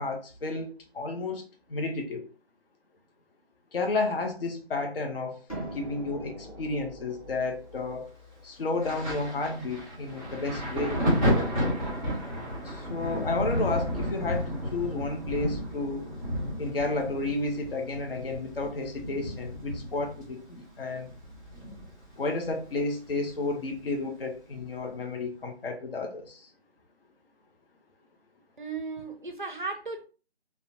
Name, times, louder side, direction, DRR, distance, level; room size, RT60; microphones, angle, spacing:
voice 1, 0.0-1.4 1.7-2.3 3.7-8.1 8.4-11.0 12.6-16.1 16.6-21.1 22.2-26.5, left 3 dB, 60° left, 0.6 m, -32 dB
sound 1, 5.5-11.1, right 1 dB, 35° left, 1.1 m, -44 dB
Thunder, 8.8-22.2 22.4-23.8 24.6-24.8, equal, 5° left, 1.1 m, -32 dB
voice 2, 28.6-30.1, right 4 dB, 50° right, 0.4 m, -35 dB
2.4 x 2.0 x 2.8 m
figure-of-eight pair, 175°, 33 cm